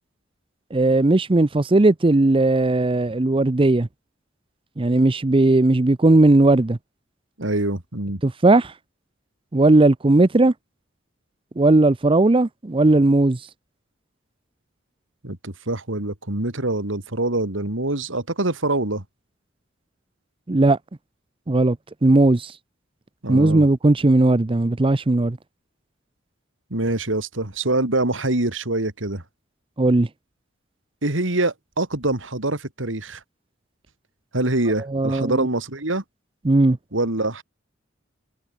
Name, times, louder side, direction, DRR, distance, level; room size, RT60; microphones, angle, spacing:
voice 1, 0.7-3.9 4.8-6.8 8.2-8.7 9.5-10.5 11.6-13.4 20.5-20.8 21.5-21.8 22.0-22.5 23.3-25.4 29.8-30.1 34.9-35.4 36.4-36.8, right 2 dB, 30° right, 0.6 m, -17 dB
voice 2, 7.4-8.2 15.2-19.0 23.2-23.7 26.7-29.2 31.0-33.2 34.3-36.0 36.9-37.4, right 2 dB, 85° right, 3.4 m, -24 dB
head